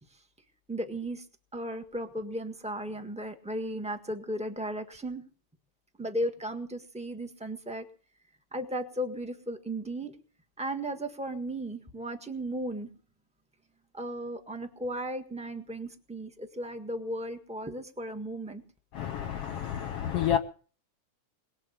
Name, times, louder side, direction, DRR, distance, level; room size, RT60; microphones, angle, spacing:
voice 1, 0.7-1.2 1.5-5.2 6.0-7.9 8.5-10.1 10.6-12.9 13.9-18.6, right 1 dB, 5° right, 0.5 m, -35 dB
voice 2, 18.9-20.4, left 10 dB, 65° left, 1.6 m, -30 dB
22.0 x 7.6 x 8.6 m
omnidirectional pair, 3.4 m